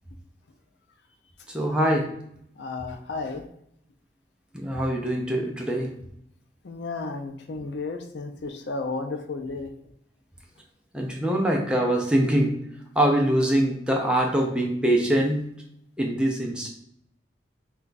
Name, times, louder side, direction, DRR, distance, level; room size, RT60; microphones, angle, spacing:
voice 1, 1.5-2.2 4.5-5.9 10.9-12.6 13.0-15.5 16.0-16.7, right 1 dB, 5° right, 0 dB, 0.5 m, -23 dB
voice 2, 2.6-3.4 6.6-9.7, left 3 dB, 75° left, 5 dB, 0.5 m, -33 dB
3.3 x 2.3 x 4.0 m, 0.72 s
head